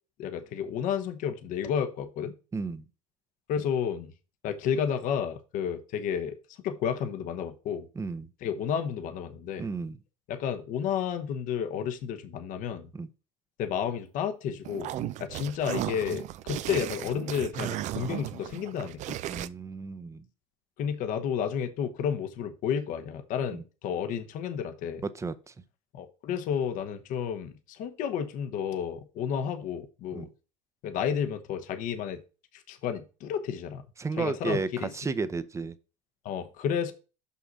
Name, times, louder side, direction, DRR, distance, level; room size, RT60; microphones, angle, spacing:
voice 1, 0.2-2.3 3.5-4.1 4.4-6.4 6.6-7.9 8.4-9.7 10.3-12.9 13.6-14.9 15.2-19.2 20.8-25.0 25.9-30.3 30.8-32.2 32.5-33.8 34.2-34.9 36.2-36.9, left 8 dB, 55° left, 1.1 m, -31 dB
voice 2, 2.5-2.8 7.9-8.3 9.6-10.0 12.9-13.1 15.0-15.1 19.3-20.3 23.5-23.6 25.0-25.5 30.1-30.3 34.0-35.7, right 4 dB, 20° right, 0.8 m, -33 dB
sound 1, 14.6-19.5, right 13 dB, 50° right, 0.5 m, -35 dB
6.0 x 5.6 x 4.1 m
hypercardioid pair, 85°, 16 cm